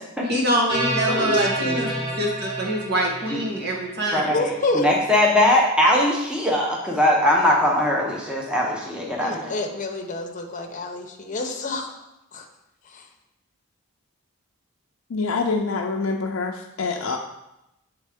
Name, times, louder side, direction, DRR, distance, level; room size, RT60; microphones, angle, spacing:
voice 1, 0.3-1.9 2.2-4.3, equal, 50° right, -1 dB, 1.2 m, -24 dB
sound 1, 0.7-4.0, right 2 dB, 25° right, 2.2 m, -28 dB
voice 2, 1.1-2.2 4.3-4.9 9.2-11.9 12.3-12.4, left 2 dB, 40° left, 3 dB, 0.7 m, -28 dB
voice 3, 4.1-9.5, left 1 dB, 5° right, -2 dB, 0.7 m, -20 dB
voice 4, 15.1-17.2, left 4 dB, 75° left, 0 dB, 0.5 m, -25 dB
8.3 x 3.6 x 3.5 m, 0.89 s
head